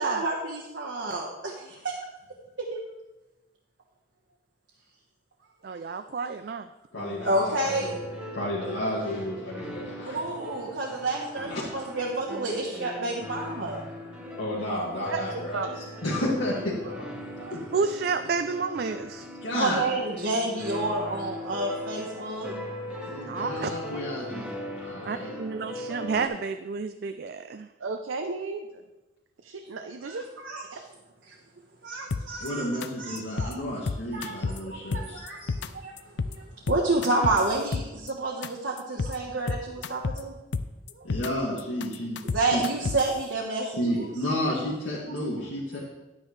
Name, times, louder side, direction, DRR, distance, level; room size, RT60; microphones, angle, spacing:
voice 1, 0.0-1.9 2.7-2.8 7.3-7.9 10.0-13.8 17.4-17.5 19.5-22.5 30.0-30.8 31.3-31.4 31.8-32.6 33.0-33.6 34.1-34.3 34.7-35.9 36.2-40.3 40.9-41.1 42.3-44.1, right 2 dB, 65° right, -2 dB, 1.2 m, -29 dB
voice 2, 5.6-6.7 7.0-7.1 17.7-19.3 23.3-23.8 25.0-27.7, right 5 dB, 50° right, 9 dB, 0.3 m, -30 dB
voice 3, 6.9-8.0 8.3-10.2 11.5-11.6 14.3-17.1 17.5-17.6 19.4-19.8 23.1-24.5 24.8-25.3 32.4-35.5 41.0-42.2 42.5-42.6 43.8-45.8, left 1 dB, 85° left, -7 dB, 2.1 m, -31 dB
sound 1, 7.1-26.3, left 1 dB, 5° right, 1.2 m, -39 dB
voice 4, 27.8-28.8 29.4-30.3 30.7-30.8, right 4 dB, 90° right, 5 dB, 0.6 m, -33 dB
sound 2, 32.1-32.5 32.8-32.9 33.2-33.5 33.9-34.6 34.9-35.7 36.0-36.3 36.7-38.1 38.4-38.5 38.8-39.2 39.5-40.2 40.5-41.3 41.6-43.1, left 4 dB, 60° left, 0.4 m, -30 dB
10.5 x 9.6 x 3.2 m, 1.0 s
head